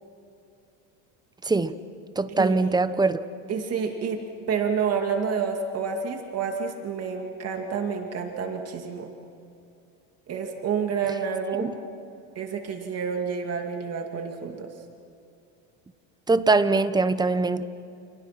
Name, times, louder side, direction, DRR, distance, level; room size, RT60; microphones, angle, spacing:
voice 1, 1.4-1.7 2.2-3.2 11.6-11.7 16.3-17.6, right 3 dB, 10° right, 12 dB, 1.0 m, -22 dB
voice 2, 2.3-2.7 3.5-9.1 10.3-11.7 12.4-14.7, right 6 dB, 40° right, 4 dB, 2.5 m, -29 dB
29.0 x 28.5 x 5.9 m, 2.6 s
supercardioid pair, 125°, 38 cm